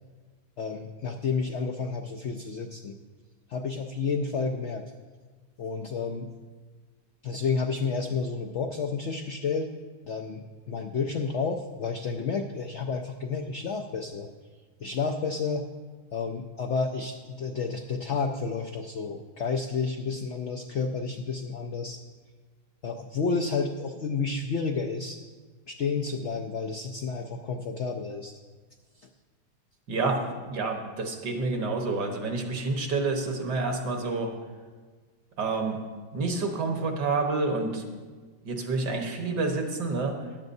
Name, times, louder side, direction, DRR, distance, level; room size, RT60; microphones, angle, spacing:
voice 1, 0.6-2.9 3.5-4.9 5.6-6.3 7.2-9.7 10.1-14.3 14.8-15.7 16.1-22.0 22.8-25.2 25.7-28.4 29.0-29.1, left 5 dB, 85° left, 4 dB, 0.6 m, -30 dB
voice 2, 29.9-34.3 35.4-35.8 36.1-37.8 38.4-40.2, right 3 dB, 70° right, 3 dB, 1.8 m, -28 dB
14.5 x 10.5 x 2.7 m, 1.4 s
omnidirectional pair, 1.9 m